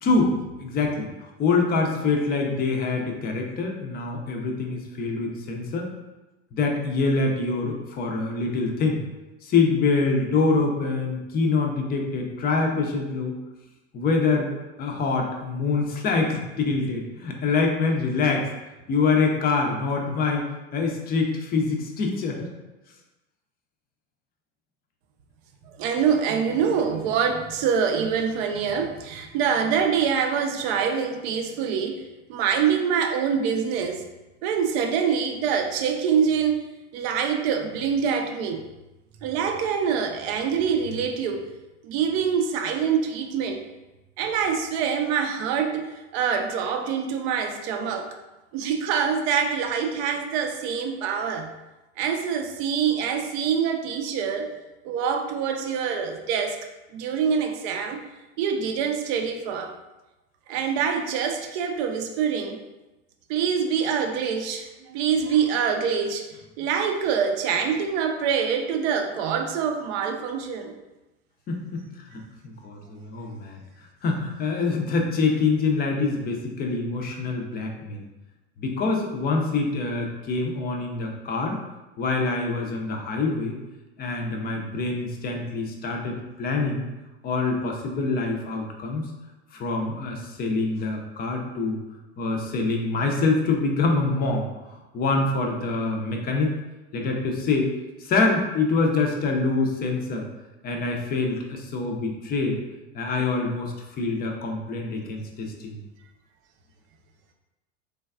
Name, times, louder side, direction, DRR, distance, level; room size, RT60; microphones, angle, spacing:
voice 1, 0.0-0.3 0.6-5.9 6.5-9.0 9.4-13.3 13.9-14.5 14.8-18.5 18.9-20.4 20.7-22.5 71.5-78.0 78.6-81.6 82.0-83.6 84.0-86.9 87.2-89.1 89.5-91.8 92.2-94.4 94.9-96.5 96.9-97.7 98.0-100.2 100.6-102.6 102.9-105.8, left 3 dB, 25° left, 2 dB, 0.4 m, -25 dB
voice 2, 25.6-34.0 34.4-36.6 36.9-38.6 39.2-41.5 41.8-43.6 44.2-48.1 48.5-51.5 52.0-54.5 54.8-56.6 56.9-58.0 58.4-59.7 60.5-62.6 63.3-70.7, right 7 dB, 60° right, 5 dB, 0.5 m, -25 dB
3.3 x 2.2 x 2.3 m, 1.0 s
hypercardioid pair, 100°, 36 cm